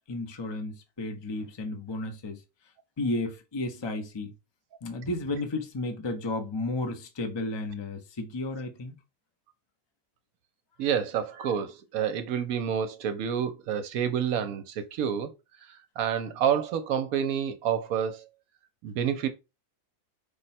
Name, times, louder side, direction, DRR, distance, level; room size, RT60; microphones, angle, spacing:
voice 1, 0.1-2.4 3.0-4.3 4.8-8.9, left 2 dB, 40° left, 0.4 m, -33 dB
voice 2, 10.8-15.3 15.6-18.3 18.8-19.3, right 8 dB, 70° right, 1.0 m, -29 dB
5.2 x 2.1 x 4.1 m
omnidirectional pair, 1.6 m